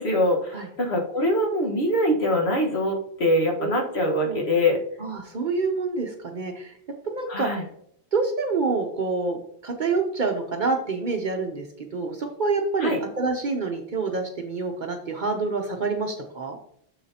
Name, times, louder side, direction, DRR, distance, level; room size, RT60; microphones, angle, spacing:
voice 1, 0.0-4.8 7.3-7.6 12.8-13.0, left 1 dB, 85° left, 1 dB, 1.7 m, -23 dB
voice 2, 5.0-6.8 7.0-7.6 8.1-9.4 9.6-16.6, right 4 dB, 50° right, 3 dB, 0.8 m, -27 dB
7.0 x 6.6 x 2.8 m, 0.67 s
omnidirectional pair, 1.1 m